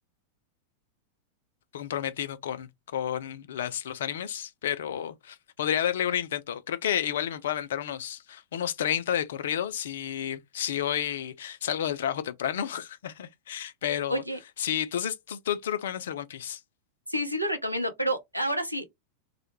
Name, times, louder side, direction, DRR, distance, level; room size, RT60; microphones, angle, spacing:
voice 1, 1.7-14.2 14.6-16.6, left 10 dB, 60° left, 0.3 m, -31 dB
voice 2, 17.1-18.8, equal, 90° right, 0.5 m, -29 dB
2.1 x 2.0 x 2.9 m
figure-of-eight pair, 90°, 0 cm